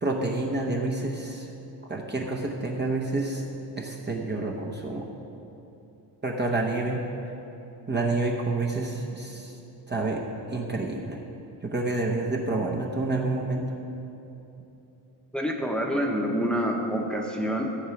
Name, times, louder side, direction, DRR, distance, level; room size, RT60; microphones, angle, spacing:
voice 1, 0.0-1.5 1.9-3.4 3.8-5.0 6.2-7.0 7.9-9.5 9.9-10.2 10.5-11.2 11.6-13.7, right 2 dB, 25° right, -1 dB, 0.9 m, -28 dB
voice 2, 15.3-17.6, equal, ahead, 0 dB, 1.0 m, -27 dB
14.5 x 8.0 x 5.9 m, 3.0 s
wide cardioid pair, 160°, 43 cm